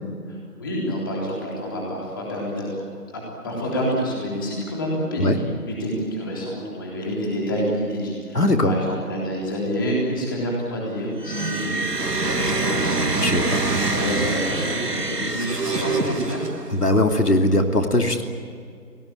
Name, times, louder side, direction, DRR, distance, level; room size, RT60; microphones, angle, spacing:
voice 1, 0.3-2.8 3.1-13.5 13.8-16.4, equal, 15° left, -3 dB, 3.6 m, -28 dB
voice 2, 8.3-8.7 13.1-13.7 16.7-18.2, left 1 dB, 75° left, 4 dB, 2.8 m, -20 dB
sound 1, 11.2-16.9, right 3 dB, 90° right, 2.1 m, -25 dB
29.5 x 18.5 x 8.9 m, 2.2 s
figure-of-eight pair, 170°, 47 cm